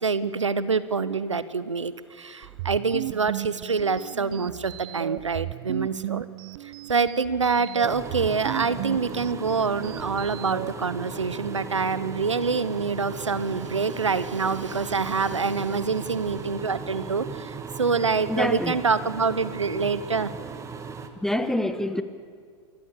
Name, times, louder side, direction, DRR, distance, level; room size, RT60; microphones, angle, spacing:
voice 1, 0.0-6.3 6.6-20.3, right 5 dB, 85° right, 15 dB, 1.0 m, -26 dB
sound 1, 2.4-10.7, right 21 dB, 45° right, 0.5 m, -35 dB
sound 2, 7.8-21.1, right 5 dB, 20° right, 2.0 m, -37 dB
voice 2, 18.3-18.7 21.2-22.0, left 1 dB, 5° left, 10 dB, 1.5 m, -26 dB
27.5 x 21.5 x 6.8 m, 2.1 s
figure-of-eight pair, 95°, 15 cm